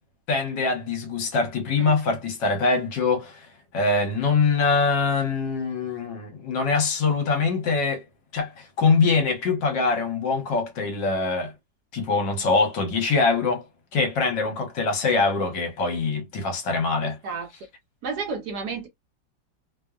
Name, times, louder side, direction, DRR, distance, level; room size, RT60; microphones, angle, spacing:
voice 1, 0.3-3.4 3.7-8.0 8.3-11.5 11.9-13.6 13.9-17.2, left 4 dB, 70° left, 1.6 m, -23 dB
voice 2, 18.0-18.9, right 4 dB, 70° right, 1.0 m, -31 dB
3.4 x 2.1 x 2.3 m
omnidirectional pair, 2.1 m